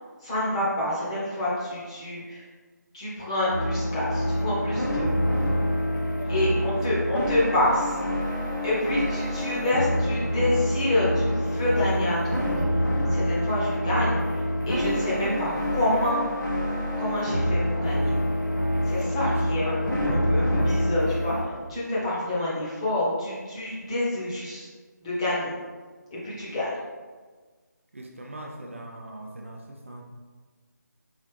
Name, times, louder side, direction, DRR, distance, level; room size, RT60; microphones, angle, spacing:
voice 1, 0.2-2.4 2.9-5.1 6.3-8.0 8.6-12.6 13.1-16.2 17.0-18.2 18.9-24.7 25.0-25.5 26.1-26.7, left 1 dB, 15° left, -8 dB, 0.9 m, -27 dB
sound 1, 3.5-21.4, equal, 85° left, 1.3 m, -26 dB
voice 2, 6.6-6.9 19.3-19.8 27.9-30.0, right 1 dB, 45° right, 0 dB, 0.4 m, -41 dB
4.7 x 2.8 x 3.4 m, 1.4 s
figure-of-eight pair, 160°, 10 cm